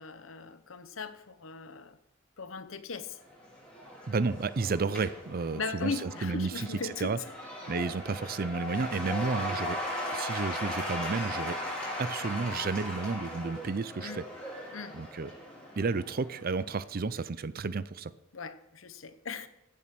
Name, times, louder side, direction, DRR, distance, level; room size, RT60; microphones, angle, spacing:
voice 1, 0.0-2.0 2.4-3.2 5.6-7.2 7.6-7.7 14.0-14.2 14.7-15.0 18.3-19.5, left 4 dB, 75° left, 1.0 m, -38 dB
Cheering / Applause / Crowd, 3.2-16.7, left 1 dB, 5° left, 4.2 m, -38 dB
voice 2, 4.1-6.7 7.0-7.2 7.7-9.8 10.1-11.6 12.0-14.2 14.9-15.3 15.8-18.1, right 4 dB, 45° right, 0.5 m, -32 dB
15.5 x 7.3 x 6.0 m
head